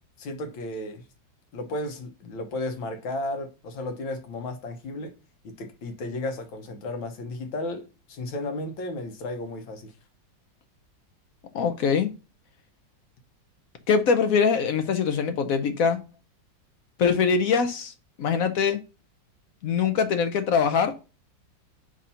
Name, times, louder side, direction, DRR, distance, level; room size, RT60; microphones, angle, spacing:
voice 1, 0.2-1.0 1.5-5.1 5.4-9.9, left 2 dB, 85° left, 1.9 m, -34 dB
voice 2, 11.5-12.1 13.9-16.0 17.0-17.9 18.2-18.8 19.6-20.9, left 6 dB, 65° left, 0.9 m, -23 dB
7.4 x 2.7 x 5.6 m
omnidirectional pair, 2.1 m